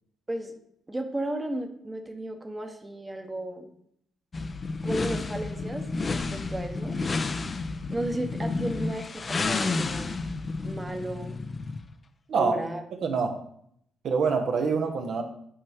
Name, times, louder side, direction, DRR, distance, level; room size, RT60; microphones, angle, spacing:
voice 1, 0.3-0.6 0.9-3.7 4.8-7.0 7.9-10.1 10.6-11.4 12.3-12.8, right 1 dB, 15° right, 4 dB, 1.0 m, -34 dB
sound 1, 4.3-11.9, left 3 dB, 35° left, 0.6 m, -31 dB
voice 2, 13.0-13.4 14.0-15.2, right 5 dB, 65° right, 4 dB, 1.0 m, -25 dB
8.8 x 4.4 x 3.5 m, 0.69 s
cardioid pair, 90°, 0 cm